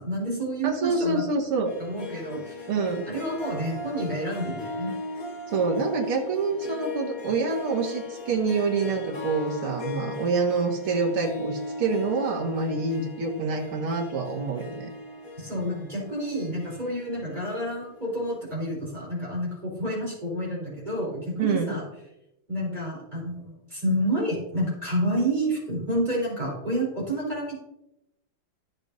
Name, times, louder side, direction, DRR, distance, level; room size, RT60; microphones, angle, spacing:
voice 1, 0.0-1.2 1.8-2.7 3.1-4.9 15.4-21.8 22.5-27.6, right 1 dB, 20° right, -5 dB, 3.9 m, -29 dB
voice 2, 0.6-1.8 2.7-3.1 5.5-14.9 21.4-21.8, right 4 dB, 85° right, 0 dB, 2.6 m, -26 dB
Harp, 1.7-18.4, left 2 dB, 45° left, 1.5 m, -38 dB
15.0 x 6.6 x 2.7 m, 0.86 s
omnidirectional pair, 2.3 m